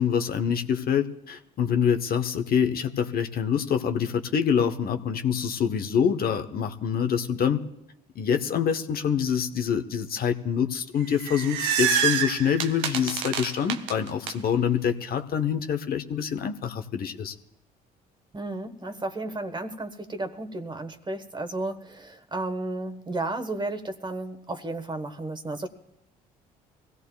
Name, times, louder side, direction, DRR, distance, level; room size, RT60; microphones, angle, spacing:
voice 1, 0.0-7.6 8.1-17.3, left 7 dB, 50° left, 7 dB, 1.0 m, -26 dB
sound 1, 11.0-14.3, right 8 dB, 75° right, 0.8 m, -27 dB
voice 2, 18.3-25.7, right 2 dB, 25° right, 8 dB, 1.3 m, -33 dB
24.0 x 16.5 x 2.4 m, 0.82 s
hypercardioid pair, 55°, 19 cm